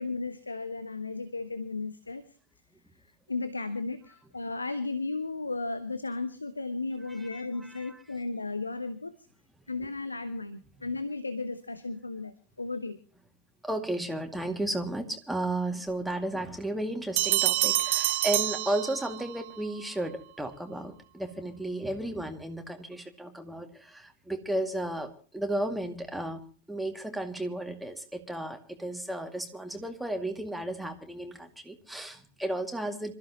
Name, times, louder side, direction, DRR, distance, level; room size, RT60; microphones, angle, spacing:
voice 1, 0.0-2.2 3.3-9.1 9.7-13.0, left 3 dB, 80° left, 13 dB, 1.0 m, -35 dB
voice 2, 7.3-8.0 13.6-26.4 26.7-33.1, right 1 dB, 5° right, 4 dB, 2.2 m, -34 dB
sound 1, 17.2-19.4, right 17 dB, 50° right, 0.6 m, -27 dB
26.5 x 14.0 x 3.0 m, 0.38 s
figure-of-eight pair, 90°, 0 cm